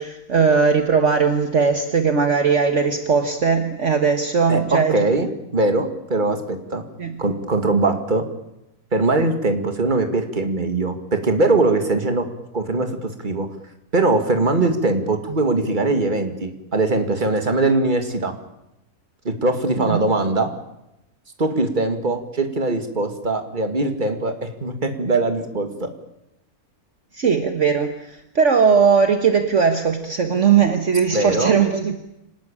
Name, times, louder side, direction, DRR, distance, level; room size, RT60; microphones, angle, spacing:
voice 1, 0.0-5.0 7.0-7.1 19.8-20.0 27.1-32.0, right 6 dB, 50° right, 6 dB, 1.7 m, -19 dB
voice 2, 4.5-6.8 7.2-8.3 8.9-12.3 12.5-13.5 13.9-18.3 19.2-20.5 21.4-25.9 31.1-31.5, right 2 dB, 30° right, 6 dB, 2.3 m, -21 dB
26.0 x 19.0 x 8.8 m, 0.87 s
omnidirectional pair, 1.6 m